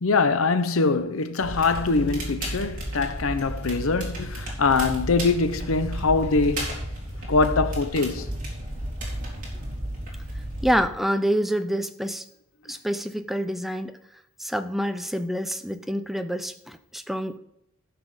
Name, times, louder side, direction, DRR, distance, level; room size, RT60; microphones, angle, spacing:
voice 1, 0.0-6.7 7.3-8.3, left 4 dB, 85° left, 0.8 m, -23 dB
Crackle, 1.4-10.8, right 1 dB, 40° right, 3.6 m, -33 dB
voice 2, 10.6-12.2 12.7-14.0 14.4-17.4, equal, ahead, 0.5 m, -27 dB
14.0 x 6.1 x 5.1 m
head